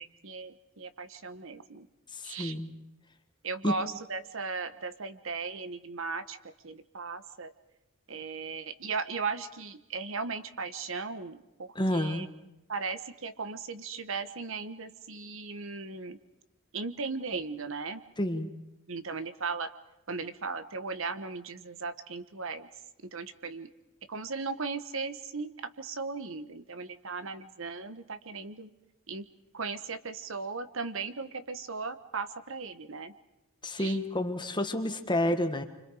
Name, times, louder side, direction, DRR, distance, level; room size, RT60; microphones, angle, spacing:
voice 1, 0.0-1.9 2.2-2.6 3.4-6.4 6.6-7.5 8.1-12.3 12.7-16.2 16.7-18.0 18.9-19.7 20.1-22.7 23.1-23.7 24.1-28.7 29.1-29.2 29.5-33.1 33.8-34.0, right 4 dB, 65° right, 10 dB, 1.2 m, -37 dB
voice 2, 2.1-2.7 3.6-3.7 11.7-12.3 18.2-18.5 33.6-35.6, left 1 dB, 20° left, 7 dB, 1.6 m, -29 dB
29.5 x 25.5 x 4.9 m, 0.93 s
head